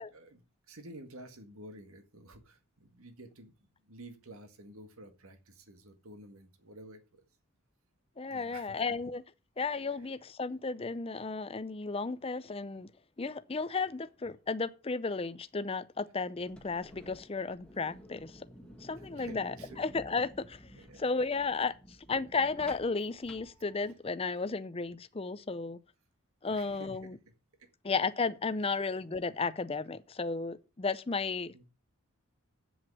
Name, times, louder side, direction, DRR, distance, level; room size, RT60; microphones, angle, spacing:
voice 1, 0.0-3.5 3.8-7.2 8.3-8.7 19.1-19.8 20.7-21.2 26.4-27.1 27.6-27.7 31.5-31.6, right 1 dB, 70° right, 1.8 m, -51 dB
voice 2, 8.2-9.2 9.6-12.9 13.2-18.4 18.8-20.6 21.0-21.7 22.1-25.8 26.4-27.2 27.8-31.5, left 4 dB, 25° left, 0.5 m, -34 dB
sound 1, 16.4-24.2, equal, 5° left, 1.7 m, -53 dB
8.1 x 7.5 x 7.4 m
head